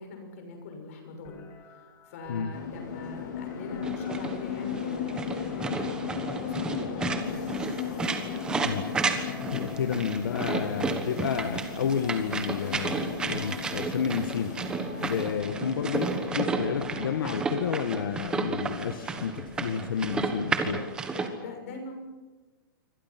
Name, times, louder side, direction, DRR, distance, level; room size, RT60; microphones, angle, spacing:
voice 1, 0.0-1.4 1.7-7.7 21.1-21.9, left 3 dB, 40° left, 4 dB, 6.5 m, -42 dB
sound 1, 1.2-17.2, left 3 dB, 20° left, 3.1 m, -49 dB
sound 2, 2.5-21.0, left 7 dB, 55° left, 3.7 m, -37 dB
sound 3, 3.8-21.3, right 4 dB, 5° right, 1.3 m, -32 dB
voice 2, 9.5-14.6 15.0-20.9, left 7 dB, 75° left, 8 dB, 1.6 m, -31 dB
28.0 x 24.5 x 6.0 m, 1.2 s
hypercardioid pair, 180°, 12 cm